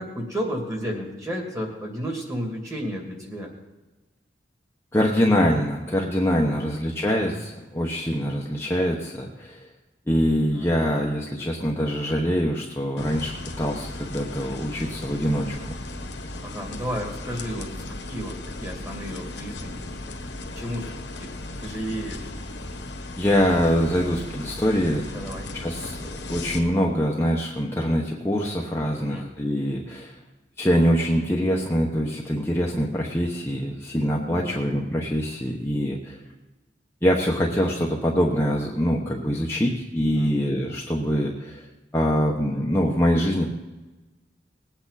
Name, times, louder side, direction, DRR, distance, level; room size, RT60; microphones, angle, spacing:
voice 1, 0.0-3.5 6.4-6.7 10.5-10.7 16.4-20.3 20.6-20.9 21.2-21.4 21.6-22.3 25.1-25.7 29.0-29.2 34.3-34.7 40.1-40.3, equal, 15° right, 0 dB, 2.6 m, -33 dB
voice 2, 4.9-9.7 10.1-15.8 23.2-25.1 25.6-26.0 26.3-30.2 30.6-36.2 37.0-41.6 41.9-43.5, equal, 15° left, -2 dB, 1.0 m, -24 dB
sound 1, 13.0-26.6, left 2 dB, 70° left, 1.5 m, -36 dB
19.5 x 8.7 x 4.1 m, 1.2 s
head